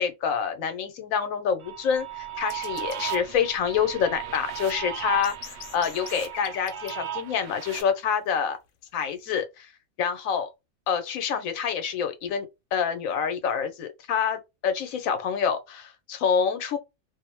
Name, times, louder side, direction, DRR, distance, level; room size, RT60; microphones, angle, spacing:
voice 1, 0.0-8.6 8.9-9.7 10.0-10.5 10.9-12.5 12.7-16.8, left 7 dB, 85° left, 1.1 m, -27 dB
sound 1, 1.6-7.8, right 11 dB, 60° right, 0.8 m, -36 dB
sound 2, 2.4-3.0 4.2-7.0 9.0-9.3, left 8 dB, 65° left, 0.5 m, -43 dB
2.6 x 2.0 x 2.9 m
omnidirectional pair, 1.4 m